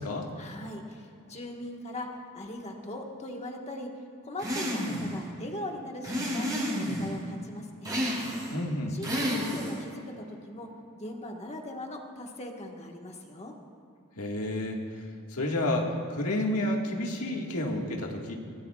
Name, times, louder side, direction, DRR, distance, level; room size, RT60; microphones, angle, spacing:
voice 1, 0.4-3.9 4.2-8.0 8.9-10.7 11.0-13.5, left 1 dB, 30° left, 1 dB, 1.4 m, -40 dB
sound 1, 4.4-5.1 6.0-7.1 7.8-8.6 9.0-9.8, equal, 20° right, 4.4 m, -30 dB
voice 2, 8.5-9.0 14.2-14.8 15.3-18.3, left 1 dB, 85° left, 0 dB, 1.7 m, -30 dB
24.0 x 17.5 x 2.4 m, 2.5 s
head